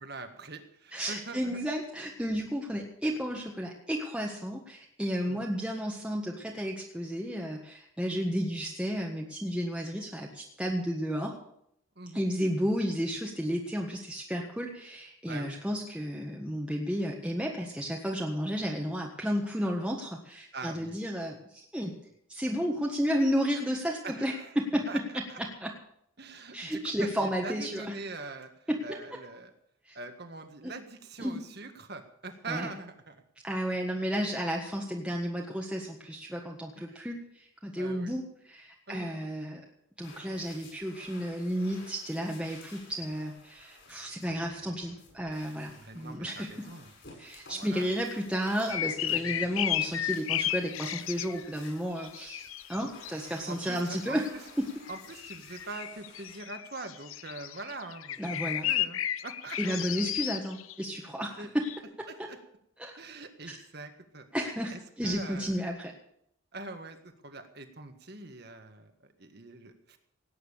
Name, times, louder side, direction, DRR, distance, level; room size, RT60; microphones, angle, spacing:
voice 1, 0.0-1.6 5.3-5.4 12.0-12.2 15.3-15.6 20.5-21.0 24.0-24.6 24.9-25.0 25.3-25.4 26.2-28.5 28.8-29.5 29.9-33.2 36.8-37.1 37.7-38.1 38.9-39.3 45.7-46.9 47.5-47.9 49.1-49.5 52.8-52.9 53.5-54.2 54.9-59.8 61.4-61.5 62.1-62.4 63.0-64.3 64.7-65.5 66.5-70.0, right 3 dB, 50° right, 7 dB, 1.7 m, -43 dB
voice 2, 0.9-11.3 12.1-21.9 22.3-25.0 25.6-25.7 26.5-27.9 28.7-29.2 29.9-30.0 30.6-30.7 31.2-31.4 32.5-32.7 33.4-39.6 40.0-46.6 47.2-54.2 54.6-54.7 58.2-58.7 59.6-61.6 62.8-62.9 63.5-63.6 64.3-65.9, equal, 5° right, -1 dB, 1.5 m, -32 dB
sound 1, 40.0-56.4, left 3 dB, 55° left, 8.0 m, -54 dB
sound 2, 48.7-51.7 52.0-53.4 53.8-54.5 54.9-60.8 61.6-61.8, left 12 dB, 80° left, 0.7 m, -33 dB
18.0 x 9.4 x 6.7 m, 0.72 s
head